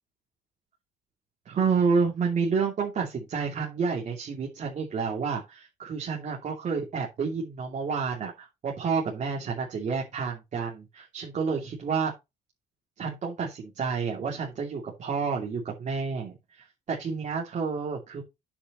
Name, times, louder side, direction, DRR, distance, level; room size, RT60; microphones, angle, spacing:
voice 1, 1.4-12.1 13.0-18.2, right 5 dB, 45° right, 2.8 m, -29 dB
9.7 x 6.9 x 3.1 m
cardioid pair, 110°, 17 cm